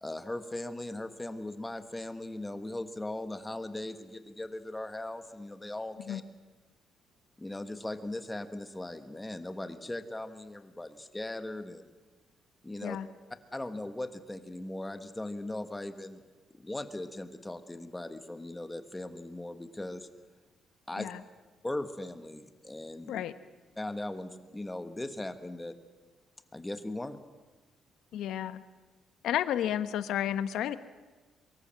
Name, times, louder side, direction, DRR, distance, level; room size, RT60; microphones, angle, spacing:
voice 1, 0.0-6.2 7.4-11.9 12.6-13.0 13.5-16.2 16.5-20.1 20.9-21.1 21.6-23.2 23.8-25.8 26.5-27.2, left 1 dB, 10° left, 9 dB, 1.4 m, -39 dB
voice 2, 28.1-28.6 29.2-30.8, left 10 dB, 75° left, 12 dB, 1.1 m, -31 dB
24.0 x 23.0 x 7.5 m, 1.3 s
cardioid pair, 155°, 0 cm